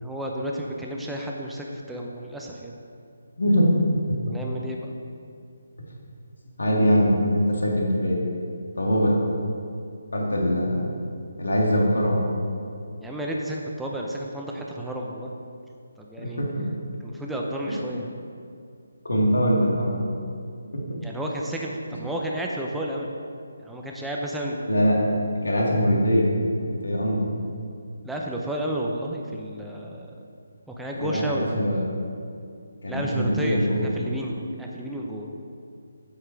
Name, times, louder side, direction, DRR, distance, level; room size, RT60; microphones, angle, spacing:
voice 1, 0.0-2.8 4.3-4.9 13.0-15.3 16.0-16.4 17.0-18.1 21.0-23.1 23.6-24.7 28.0-30.1 30.7-31.5 32.9-35.3, right 1 dB, 5° right, -2 dB, 0.5 m, -31 dB
voice 2, 3.4-3.7 4.1-4.2 6.6-8.3 8.8-9.2 10.1-10.8 11.4-12.2 16.2-16.6 17.7-17.9 19.0-20.1 20.7-20.8 24.7-25.1 25.4-26.3 26.6-27.3 30.9-31.8 32.8-33.9, equal, 85° left, -2 dB, 1.9 m, -22 dB
7.8 x 5.7 x 4.6 m, 2.3 s
figure-of-eight pair, 160°, 0 cm